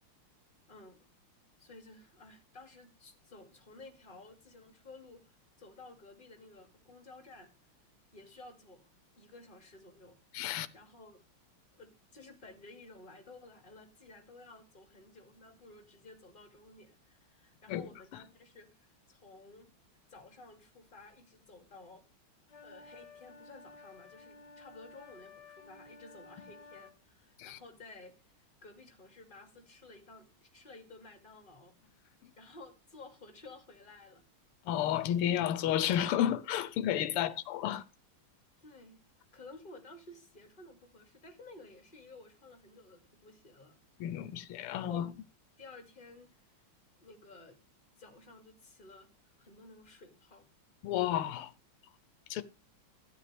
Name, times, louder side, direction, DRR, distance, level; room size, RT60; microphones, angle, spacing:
voice 1, 0.7-1.1 1.6-7.7 8.1-8.9 9.2-11.2 11.7-19.7 20.1-22.0 22.6-31.7 32.4-34.2 37.1-37.4 38.6-39.0 39.3-43.8 44.7-45.1 45.6-46.5 47.0-47.6 48.0-49.1 49.4-50.5, left 2 dB, 25° left, 2.5 m, -54 dB
voice 2, 10.3-10.7 17.7-17.9 27.4-27.6 34.6-37.8 44.0-45.1 50.8-51.5 52.3-52.4, left 11 dB, 90° left, 1.7 m, -31 dB
sound 1, 22.5-27.0, left 4 dB, 55° left, 1.7 m, -54 dB
12.5 x 9.5 x 3.4 m
omnidirectional pair, 2.4 m